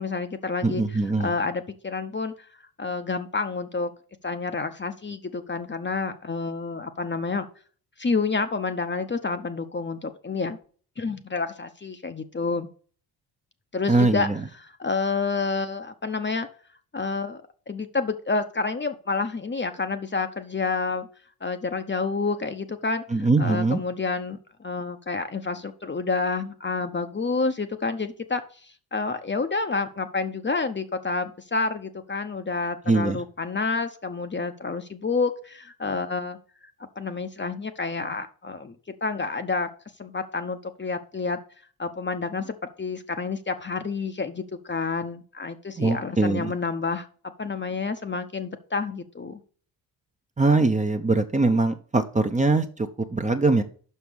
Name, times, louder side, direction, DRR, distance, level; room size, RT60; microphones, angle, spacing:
voice 1, 0.0-0.8 1.2-2.5 2.8-3.9 4.2-7.5 8.0-10.6 11.0-12.7 13.7-14.3 14.8-16.5 16.9-21.1 21.4-23.0 23.4-36.7 37.0-38.7 39.0-39.7 40.0-41.4 41.8-47.1 47.4-49.4, left 4 dB, 25° left, 8 dB, 0.9 m, -29 dB
voice 2, 0.6-1.3 13.9-14.4 23.1-23.8 32.9-33.2 45.8-46.5 50.4-53.6, right 3 dB, 15° right, 7 dB, 0.9 m, -22 dB
5.8 x 5.5 x 6.3 m, 0.43 s
supercardioid pair, 60°, 45 cm